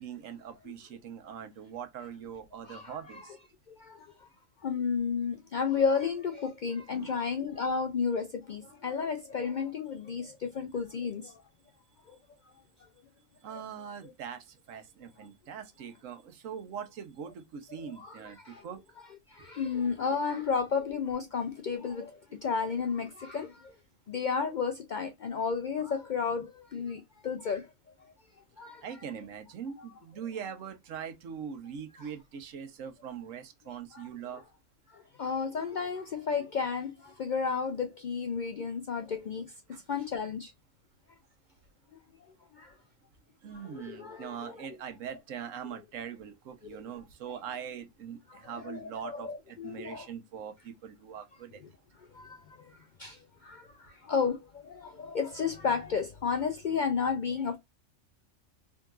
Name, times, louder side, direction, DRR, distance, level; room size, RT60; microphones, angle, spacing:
voice 1, 0.0-3.4 6.9-7.2 13.4-18.8 28.8-34.4 39.7-39.8 43.4-51.6, right 8 dB, 90° right, 1.2 m, -42 dB
voice 2, 2.6-3.4 3.7-4.3 4.6-11.4 12.1-12.2 18.0-18.7 19.0-23.7 24.1-27.7 28.6-28.8 32.0-32.1 33.9-34.1 34.9-40.5 42.5-42.7 43.5-44.7 46.7-46.8 48.3-50.1 52.1-57.6, left 5 dB, 65° left, 0.4 m, -33 dB
3.6 x 2.7 x 2.3 m
omnidirectional pair, 1.3 m